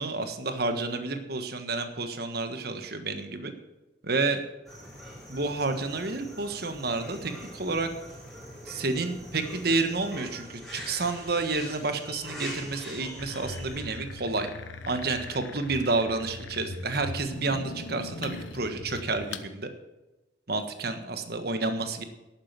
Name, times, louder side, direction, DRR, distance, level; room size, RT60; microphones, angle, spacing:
voice 1, 0.0-3.5 4.0-4.4 5.3-7.9 8.7-14.5 14.8-19.7 20.5-22.0, right 3 dB, 55° right, 8 dB, 1.4 m, -30 dB
sound 1, 4.7-13.8, equal, ahead, 4.2 m, -43 dB
sound 2, 13.2-19.5, left 3 dB, 85° left, 0.9 m, -40 dB
11.5 x 8.8 x 7.5 m, 1.0 s
head